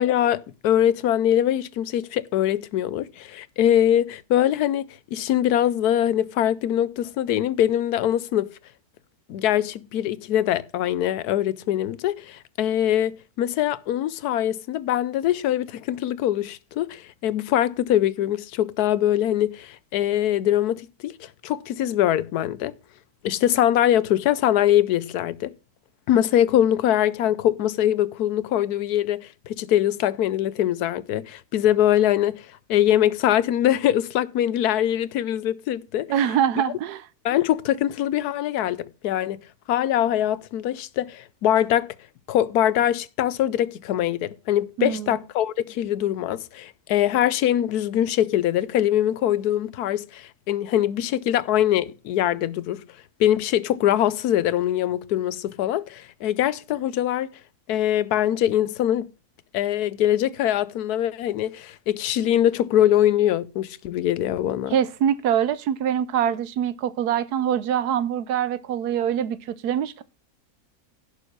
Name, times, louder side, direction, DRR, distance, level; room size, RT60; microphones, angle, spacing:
voice 1, 0.0-8.5 9.3-22.7 23.2-25.5 26.1-36.1 37.2-39.4 39.7-41.9 42.3-52.8 53.2-57.3 57.7-59.1 59.5-64.8, left 11 dB, 85° left, 1.2 m, -23 dB
voice 2, 36.1-37.0 44.8-45.2 64.7-70.0, right 9 dB, 85° right, 1.3 m, -24 dB
11.5 x 5.3 x 6.0 m
omnidirectional pair, 1.6 m